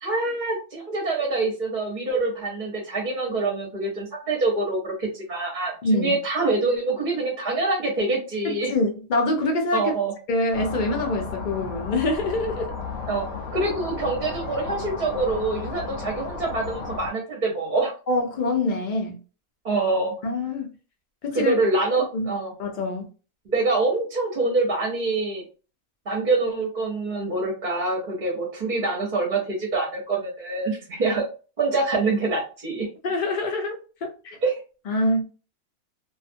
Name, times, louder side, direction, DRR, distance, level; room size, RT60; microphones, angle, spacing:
voice 1, 0.0-8.7 9.7-10.1 13.1-13.3 13.5-17.9 19.6-20.1 21.3-22.5 23.5-25.4 26.1-31.2 31.6-32.9 34.4-34.5, right 3 dB, 45° right, 0.7 m, -25 dB
voice 2, 5.8-6.2 8.4-9.9 10.3-12.7 18.1-19.2 20.2-20.7 21.2-21.5 22.1-22.3 22.6-23.1 33.0-34.1 34.9-35.2, left 2 dB, 65° left, 0.4 m, -25 dB
sound 1, 10.5-17.1, left 4 dB, 85° left, 1.1 m, -34 dB
2.5 x 2.4 x 2.5 m
omnidirectional pair, 1.5 m